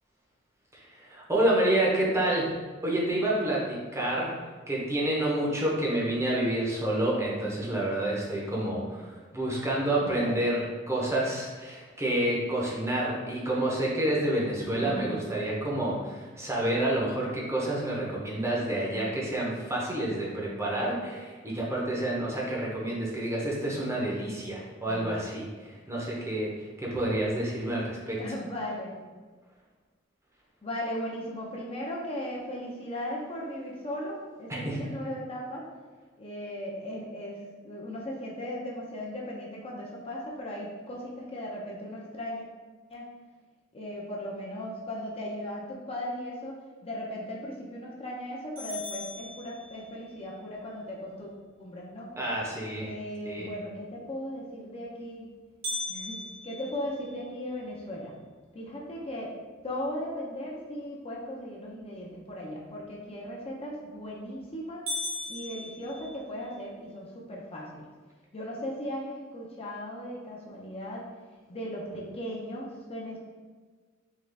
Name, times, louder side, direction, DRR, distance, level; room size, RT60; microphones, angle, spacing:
voice 1, 0.7-2.5 2.8-4.3 4.7-28.2 34.5-34.8 52.2-52.9 53.2-53.5, right 1 dB, 15° right, -4 dB, 0.8 m, -29 dB
voice 2, 9.9-10.3 14.7-15.2 24.8-25.1 28.2-29.0 30.6-35.7 36.2-37.4 37.6-42.4 42.9-43.1 43.7-46.5 46.8-51.3 51.6-52.1 52.8-55.3 55.9-58.1 58.5-59.3 59.6-64.9 65.3-67.9 68.3-71.1 71.5-73.2, equal, 30° left, -4 dB, 0.6 m, -37 dB
sound 1, 48.6-50.1 55.6-57.8 58.3-58.4 58.9-59.0 59.7-60.0 63.6-64.0 64.4-64.5 64.9-66.6, left 2 dB, 70° right, 1.4 m, -38 dB
3.7 x 3.1 x 3.3 m, 1.4 s
head